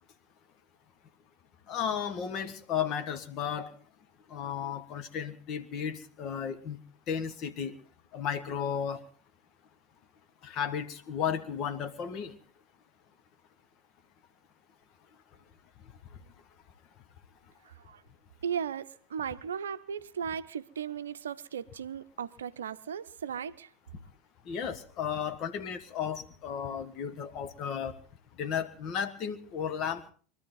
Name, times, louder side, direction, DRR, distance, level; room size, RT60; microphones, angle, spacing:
voice 1, 1.7-3.7 4.3-6.8 7.1-7.8 8.1-9.0 10.4-12.3 24.4-28.0 28.4-30.1, left 8 dB, 45° left, 1.5 m, -34 dB
voice 2, 17.7-18.0 18.4-23.7, right 8 dB, 70° right, 0.6 m, -36 dB
23.5 x 13.0 x 4.0 m
figure-of-eight pair, 75°, 0 cm